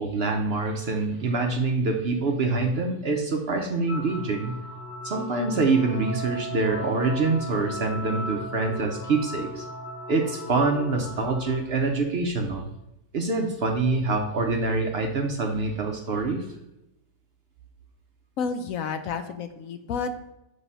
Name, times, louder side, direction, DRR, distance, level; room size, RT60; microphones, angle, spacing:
voice 1, 0.0-4.5 5.0-9.7 10.1-12.6 13.1-16.5, right 3 dB, 55° right, 3 dB, 0.7 m, -25 dB
sound 1, 3.9-11.6, equal, 85° left, 1.4 m, -36 dB
voice 2, 18.4-20.3, left 5 dB, 65° left, 8 dB, 0.9 m, -31 dB
7.9 x 3.2 x 5.4 m, 0.89 s
omnidirectional pair, 1.8 m